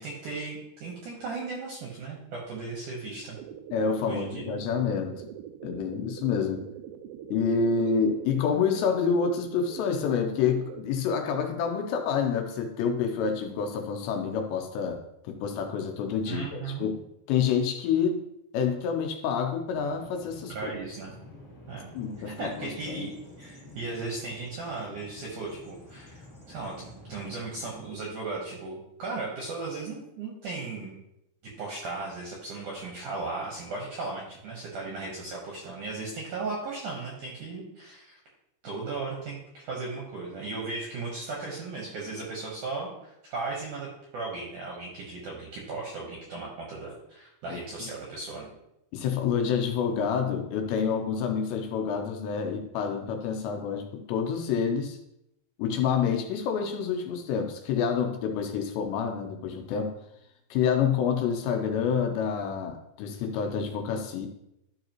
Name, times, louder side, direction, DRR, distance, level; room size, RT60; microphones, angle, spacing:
voice 1, 0.0-3.4 4.0-4.4 16.2-16.9 20.5-21.1 21.7-21.9 22.4-31.0 31.6-38.2 38.6-43.9 44.1-48.5, right 3 dB, 70° right, -3 dB, 2.0 m, -36 dB
sound 1, 3.3-10.9, right 9 dB, 85° right, 2.4 m, -43 dB
voice 2, 3.7-5.2 5.6-6.6 7.3-17.0 17.3-18.2 18.5-20.7 21.9-23.1 47.5-47.9 48.9-55.0 55.6-59.9 60.5-64.3, left 6 dB, 80° left, 4 dB, 2.8 m, -28 dB
Bird vocalization bird call bird song, 19.7-28.1, left 1 dB, 20° left, 2.0 m, -49 dB
12.5 x 5.2 x 3.0 m, 0.82 s
omnidirectional pair, 5.3 m